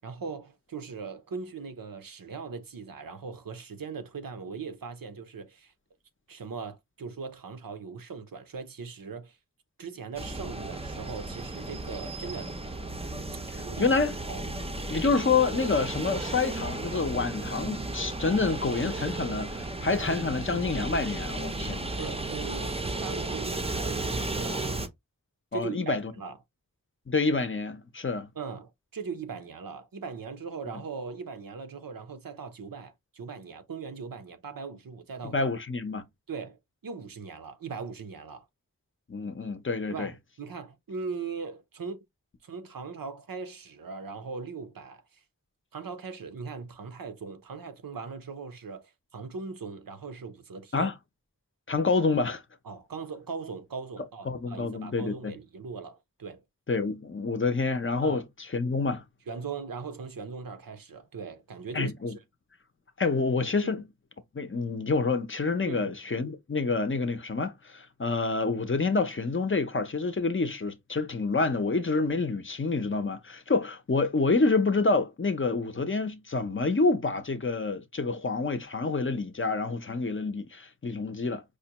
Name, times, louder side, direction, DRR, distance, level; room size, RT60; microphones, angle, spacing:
voice 1, 0.0-5.7 6.3-9.4 9.8-12.5 13.2-13.3 13.5-13.9 14.3-14.4 22.0-24.7 25.5-26.4 28.4-35.4 36.3-38.5 39.9-42.0 42.4-45.2 45.7-50.9 52.6-56.4 58.0-58.2 59.3-62.2 63.6-63.7 65.7-66.0, right 5 dB, 85° right, 0.7 m, -39 dB
sound 1, 10.2-24.9, right 2 dB, 20° right, 0.5 m, -34 dB
voice 2, 13.5-14.1 14.9-21.9 25.5-26.1 27.1-28.3 35.2-36.0 39.1-40.1 50.7-50.9 51.7-52.4 54.3-55.3 56.7-58.2 58.5-59.0 61.7-62.2 63.0-63.8 64.3-81.4, left 3 dB, 35° left, 0.5 m, -28 dB
4.9 x 2.1 x 2.8 m
wide cardioid pair, 55°, 34 cm